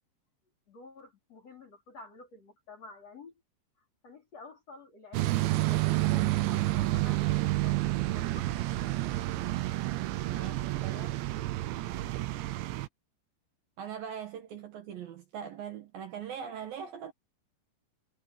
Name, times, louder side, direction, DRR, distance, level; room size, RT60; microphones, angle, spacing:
voice 1, 0.7-3.4 3.8-9.1 10.8-11.1 12.3-12.4, left 3 dB, 35° left, 5.3 m, -51 dB
sound 1, 5.1-12.9, right 17 dB, 85° right, 3.4 m, -29 dB
voice 2, 10.2-11.1 13.8-17.1, right 8 dB, 60° right, 2.9 m, -41 dB
omnidirectional pair, 5.2 m